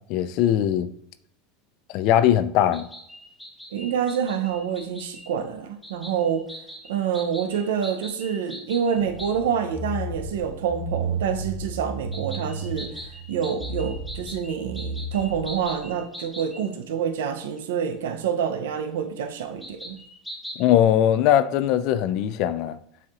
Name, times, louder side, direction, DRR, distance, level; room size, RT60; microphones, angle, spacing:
voice 1, 0.1-0.9 1.9-2.9 20.6-22.8, left 11 dB, 55° left, 0.3 m, -20 dB
sound 1, 2.7-5.3 5.8-9.3 12.1-16.7 17.6-17.7 19.6-20.6, equal, 5° left, 0.7 m, -41 dB
voice 2, 3.7-6.4 6.9-20.0, right 7 dB, 85° right, 0.5 m, -27 dB
sound 2, 8.9-15.9, right 2 dB, 60° right, 1.2 m, -33 dB
7.3 x 2.8 x 2.4 m
supercardioid pair, 110°, 0 cm